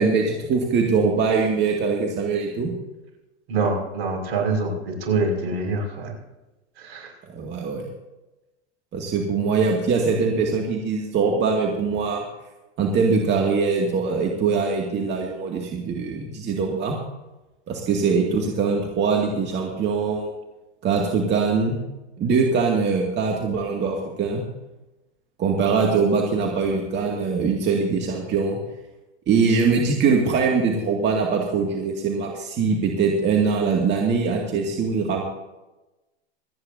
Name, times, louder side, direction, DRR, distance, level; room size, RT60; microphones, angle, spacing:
voice 1, 0.0-2.7 7.3-7.8 8.9-12.2 12.8-16.9 17.7-20.3 20.8-21.8 22.2-24.4 25.4-28.6 29.3-35.2, right 5 dB, 30° right, 0 dB, 2.2 m, -22 dB
voice 2, 3.5-6.1 6.8-7.1, right 3 dB, 65° right, 1 dB, 5.8 m, -25 dB
26.5 x 9.7 x 2.7 m, 1.0 s
hypercardioid pair, 110°, 33 cm